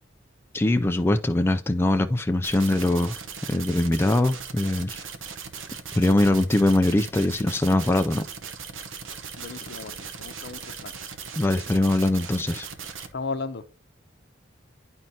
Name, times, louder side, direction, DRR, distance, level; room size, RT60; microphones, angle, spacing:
voice 1, 0.5-3.2 3.5-5.0 6.0-8.2 11.4-12.7, left 1 dB, 10° left, 0.3 m, -22 dB
sound 1, 2.4-13.1, right 6 dB, 85° right, 0.9 m, -38 dB
voice 2, 9.4-10.9 13.1-13.6, left 4 dB, 60° left, 0.7 m, -35 dB
10.5 x 4.4 x 2.7 m
head